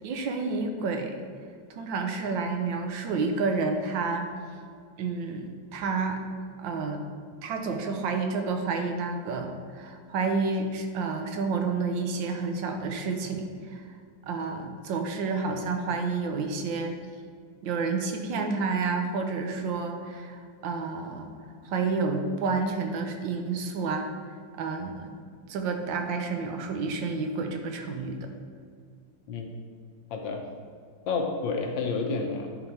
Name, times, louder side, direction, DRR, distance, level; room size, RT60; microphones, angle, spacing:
voice 1, 0.0-1.1 1.7-4.3 5.0-6.2 6.6-7.0 7.4-13.8 14.3-17.0 17.6-21.3 21.6-24.1 24.6-25.1 25.5-28.2, right 4 dB, 90° right, 5 dB, 1.5 m, -30 dB
voice 2, 30.1-30.4 31.1-32.5, left 4 dB, 90° left, 2 dB, 1.6 m, -29 dB
9.6 x 3.9 x 4.5 m, 2.1 s
omnidirectional pair, 2.0 m